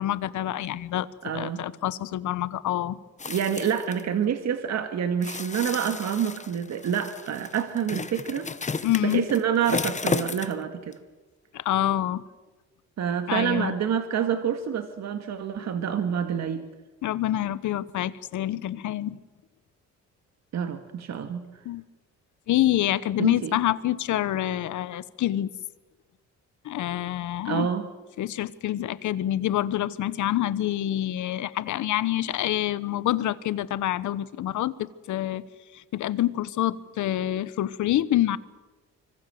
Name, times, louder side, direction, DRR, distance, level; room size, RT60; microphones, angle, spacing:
voice 1, 0.0-1.1 1.3-3.0 8.8-9.3 11.5-12.2 13.3-13.7 17.0-19.2 21.6-21.8 22.5-25.5 26.6-27.7 28.2-35.4 35.7-38.4, left 13 dB, 75° left, 1.2 m, -27 dB
voice 2, 1.2-1.6 3.3-11.0 13.0-16.7 20.5-21.4 23.2-23.5 27.4-27.9, right 8 dB, 60° right, 1.9 m, -27 dB
sound 1, 3.2-4.0 5.2-10.7 10.9-11.0, left 4 dB, 25° left, 1.1 m, -33 dB
25.5 x 24.5 x 7.8 m
cardioid pair, 90°, 30 cm